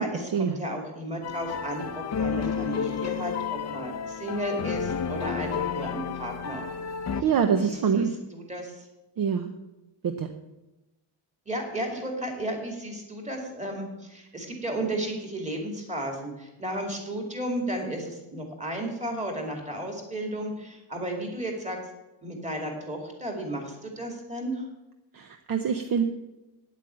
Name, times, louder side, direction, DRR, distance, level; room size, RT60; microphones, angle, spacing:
voice 1, 0.0-6.7 7.6-8.8 11.5-21.8 22.2-24.6, right 1 dB, 15° right, 2 dB, 2.5 m, -33 dB
sound 1, 1.2-7.2, left 7 dB, 35° left, 0.7 m, -31 dB
voice 2, 7.2-8.1 9.2-9.5 10.0-10.3 25.1-26.0, right 7 dB, 45° right, 7 dB, 0.8 m, -25 dB
9.3 x 8.2 x 8.7 m, 0.98 s
cardioid pair, 170°, 47 cm